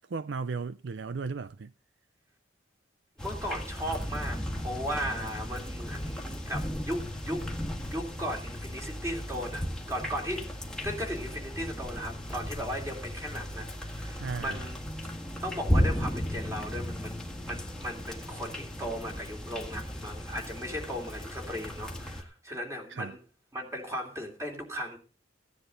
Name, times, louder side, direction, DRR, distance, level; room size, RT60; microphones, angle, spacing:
voice 1, 0.1-1.7 14.2-14.7 22.9-23.2, right 4 dB, 70° right, 0.5 m, -35 dB
sound 1, 3.2-22.2, equal, 5° left, 1.8 m, -35 dB
voice 2, 3.2-7.5 7.9-10.5 10.8-14.8 15.4-23.2 23.5-25.0, equal, 15° right, 3.1 m, -36 dB
16.5 x 10.0 x 3.9 m
head